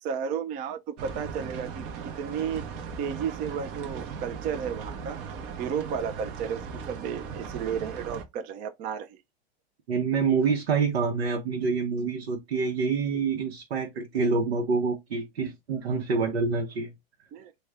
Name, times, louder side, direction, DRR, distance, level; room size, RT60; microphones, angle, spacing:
voice 1, 0.0-2.6 3.0-5.2 5.6-9.2 17.3-17.5, right 7 dB, 25° right, 0.4 m, -33 dB
sound 1, 1.0-8.2, right 6 dB, 45° right, 0.8 m, -38 dB
voice 2, 9.9-16.9, right 5 dB, 80° right, 0.9 m, -27 dB
3.2 x 2.2 x 3.5 m
hypercardioid pair, 115°, 31 cm